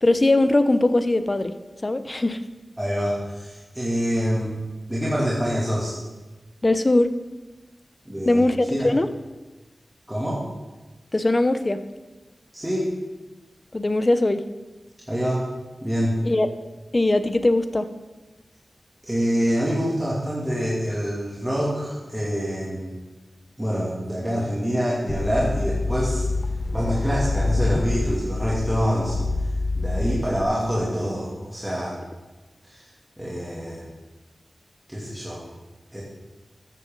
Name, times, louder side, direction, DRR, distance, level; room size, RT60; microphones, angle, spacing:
voice 1, 0.0-1.5 1.8-2.4 6.6-7.1 8.2-9.1 11.1-11.8 13.7-14.4 16.2-16.5 16.9-17.9, left 2 dB, 35° left, 10 dB, 0.8 m, -20 dB
voice 2, 2.8-4.5 4.9-5.9 8.0-8.4 8.7-8.9 10.1-10.4 12.5-12.9 15.1-15.4 15.8-16.2 19.0-22.9 23.6-26.3 26.7-29.2 29.8-32.0 32.7-32.8 33.2-33.8 34.9-35.4 35.9-36.0, equal, 10° right, -6 dB, 2.7 m, -26 dB
sound 1, 25.1-30.4, left 2 dB, 60° left, 1.3 m, -26 dB
13.0 x 9.8 x 4.0 m, 1.1 s
wide cardioid pair, 60°, 0 cm